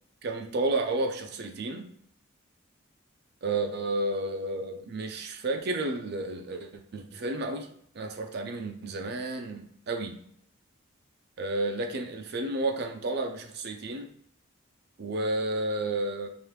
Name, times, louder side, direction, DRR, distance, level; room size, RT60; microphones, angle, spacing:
voice 1, 0.2-1.9 3.4-10.2 11.4-14.1 15.0-16.3, right 2 dB, 50° right, 5 dB, 0.4 m, -31 dB
4.9 x 2.5 x 3.1 m, 0.67 s
head